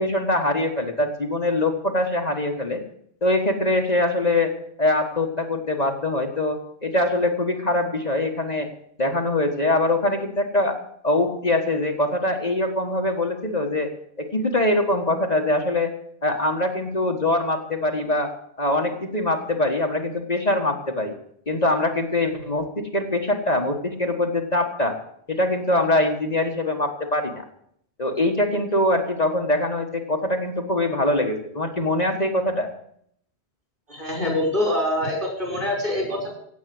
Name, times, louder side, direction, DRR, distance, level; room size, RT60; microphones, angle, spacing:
voice 1, 0.0-2.8 3.2-4.5 4.8-8.7 9.0-10.8 11.0-13.9 14.2-15.9 16.2-18.3 18.6-21.1 21.5-25.0 25.3-27.4 28.0-32.7, left 2 dB, 40° left, 3 dB, 1.7 m, -23 dB
voice 2, 33.9-36.3, left 1 dB, 50° right, 0 dB, 6.7 m, -25 dB
16.5 x 8.6 x 7.8 m, 0.68 s
omnidirectional pair, 1.1 m